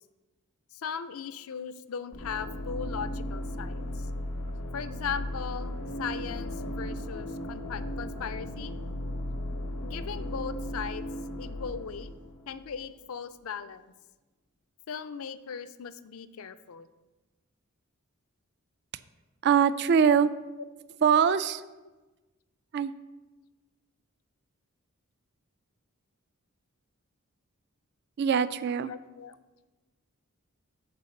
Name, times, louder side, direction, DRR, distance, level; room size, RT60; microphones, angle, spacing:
voice 1, 0.7-4.1 4.7-8.7 9.8-11.1 11.4-12.1 12.5-13.9 14.9-16.9 28.9-29.4, left 6 dB, 70° left, 12 dB, 0.4 m, -38 dB
sound 1, 2.1-12.9, left 1 dB, 90° left, 0.9 m, -36 dB
voice 2, 19.4-20.3 21.0-21.6 22.7-22.9 28.2-28.9, right 7 dB, 50° right, 15 dB, 0.3 m, -22 dB
6.9 x 5.0 x 6.6 m, 1.2 s
head